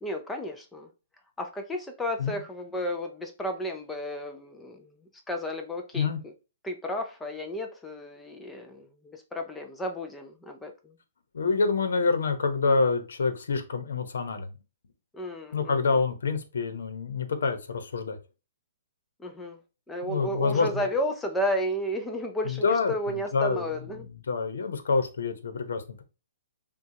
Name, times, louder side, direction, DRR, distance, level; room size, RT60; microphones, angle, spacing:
voice 1, 0.0-0.9 1.4-4.9 5.3-6.1 6.6-10.7 15.1-16.0 19.2-19.6 19.9-24.0, equal, 5° left, 0.4 m, -33 dB
voice 2, 11.3-14.5 15.5-18.2 20.0-20.8 22.4-23.7 24.0-26.0, left 4 dB, 85° left, 1.0 m, -27 dB
6.1 x 2.4 x 2.8 m
hypercardioid pair, 160°, 0 cm